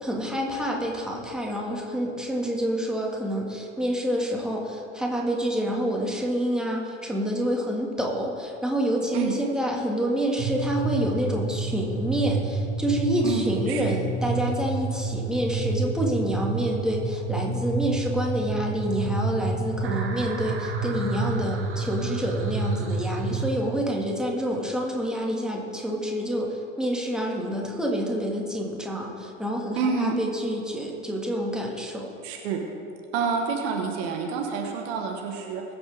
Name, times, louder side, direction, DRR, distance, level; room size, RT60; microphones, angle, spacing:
voice 1, 0.0-32.1, equal, ahead, -1 dB, 2.2 m, -28 dB
sound 1, 10.4-23.5, right 3 dB, 35° right, 1.8 m, -29 dB
voice 2, 13.2-13.8 29.8-30.1 32.2-32.6 33.1-35.6, right 5 dB, 60° right, 2 dB, 1.6 m, -28 dB
21.5 x 7.8 x 3.6 m, 2.7 s
figure-of-eight pair, 70°, 37 cm